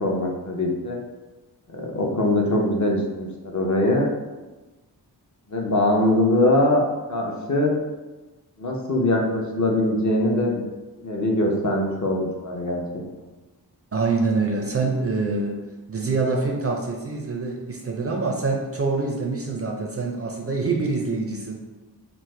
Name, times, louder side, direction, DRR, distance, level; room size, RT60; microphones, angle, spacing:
voice 1, 0.0-1.0 1.7-4.1 5.5-7.7 8.6-10.6 11.0-12.8 13.2-13.3, left 1 dB, 45° left, -1 dB, 0.6 m, -22 dB
voice 2, 13.9-21.6, right 3 dB, 35° right, 1 dB, 0.4 m, -25 dB
3.1 x 2.0 x 3.1 m, 1.1 s
cardioid pair, 55°, 42 cm